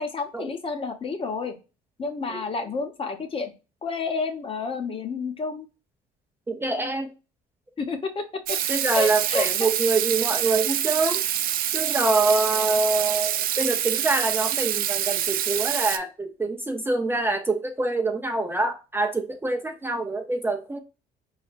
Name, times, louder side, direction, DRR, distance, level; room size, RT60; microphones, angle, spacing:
voice 1, 0.0-1.5 2.0-3.5 3.8-5.7 7.8-8.6 8.9-9.5, left 4 dB, 30° left, 6 dB, 0.9 m, -30 dB
voice 2, 6.5-7.1 8.7-11.2 11.7-20.8, right 3 dB, 15° right, 4 dB, 0.5 m, -25 dB
Water tap faucet / Sink (filling or washing), 8.5-16.0, right 11 dB, 60° right, 0.4 m, -26 dB
4.2 x 3.2 x 2.4 m, 0.30 s
cardioid pair, 110°, 17 cm